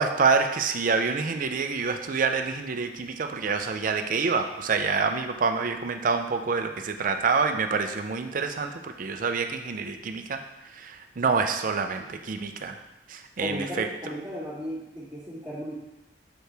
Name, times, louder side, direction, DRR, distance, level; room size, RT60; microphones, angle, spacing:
voice 1, 0.0-10.4 10.7-12.8 13.1-13.9, right 4 dB, 50° right, 7 dB, 0.5 m, -27 dB
voice 2, 13.4-15.7, equal, 5° right, -16 dB, 2.4 m, -35 dB
7.8 x 4.6 x 3.4 m, 0.97 s
head